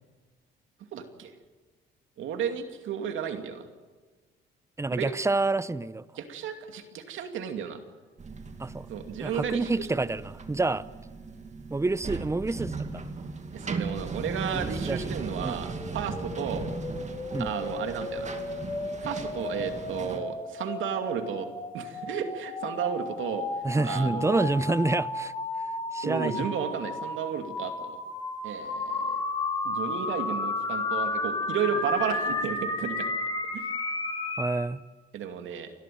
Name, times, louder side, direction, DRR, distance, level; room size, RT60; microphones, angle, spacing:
voice 1, 0.9-1.3 2.2-3.6 5.0-5.1 6.2-7.8 8.9-9.9 13.5-16.6 17.4-18.3 19.0-21.5 21.7-23.5 23.8-24.5 26.0-28.0 28.4-29.2 29.6-33.1 33.5-33.6 35.1-35.7, right 7 dB, 80° right, 6 dB, 2.6 m, -33 dB
voice 2, 4.8-6.0 8.6-8.9 9.2-10.9 11.7-13.0 14.5-15.0 15.4-15.6 17.3-17.5 23.6-25.3 25.9-26.5 34.4-34.8, right 3 dB, 15° right, 17 dB, 0.8 m, -28 dB
sound 1, 8.2-20.2, right 4 dB, 35° right, 2.4 m, -37 dB
sound 2, 15.7-34.6, left 2 dB, 20° left, 4.1 m, -33 dB
30.0 x 13.0 x 9.3 m, 1.4 s
cardioid pair, 90°, 20 cm